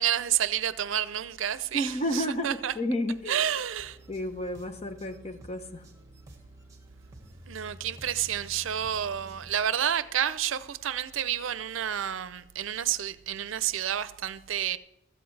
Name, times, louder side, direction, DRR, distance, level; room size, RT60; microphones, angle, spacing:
voice 1, 0.0-2.7 3.3-4.0 7.5-14.8, right 10 dB, 85° right, 0.5 m, -30 dB
voice 2, 1.7-3.4 4.1-5.9, equal, 30° left, 0.9 m, -31 dB
sound 1, 3.8-9.5, right 1 dB, 15° right, 1.5 m, -50 dB
16.0 x 13.5 x 3.2 m
head